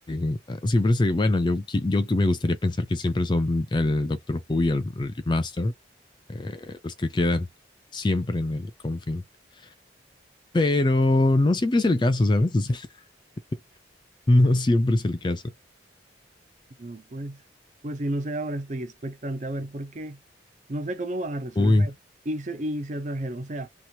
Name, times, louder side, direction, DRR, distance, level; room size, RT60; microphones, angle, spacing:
voice 1, 0.1-5.7 6.3-7.5 7.9-9.2 10.5-12.9 14.3-15.5 21.6-21.9, left 2 dB, 25° left, 0.4 m, -23 dB
voice 2, 16.8-17.4 17.8-20.2 20.7-21.9 22.3-23.7, right 1 dB, 40° right, 0.5 m, -32 dB
2.9 x 2.4 x 2.8 m
head